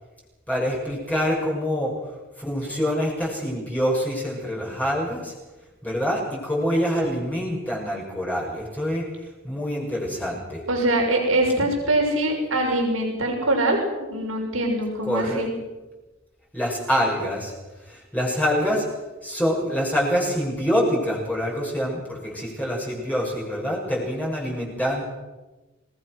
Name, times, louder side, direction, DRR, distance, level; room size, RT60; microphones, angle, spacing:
voice 1, 0.5-1.9 2.4-5.3 5.8-9.1 9.4-10.6 15.0-15.4 16.5-17.5 17.8-18.9 19.2-25.0, equal, 10° left, -3 dB, 6.7 m, -25 dB
voice 2, 10.7-15.5, right 1 dB, 85° right, 1 dB, 6.5 m, -23 dB
27.0 x 20.0 x 6.4 m, 1.1 s
head